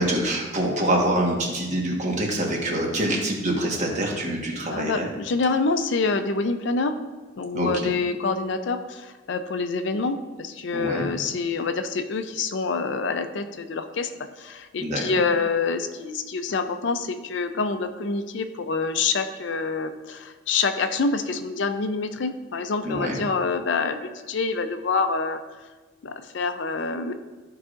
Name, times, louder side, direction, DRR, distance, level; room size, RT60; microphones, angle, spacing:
voice 1, 0.0-5.1 7.5-7.7 10.7-11.1 14.8-15.0 22.8-23.2, right 1 dB, 40° right, -1 dB, 1.3 m, -25 dB
voice 2, 4.7-6.9 7.4-14.1 14.4-25.4 26.0-27.1, left 4 dB, 65° left, 8 dB, 0.5 m, -26 dB
13.5 x 4.8 x 2.5 m, 1.3 s
head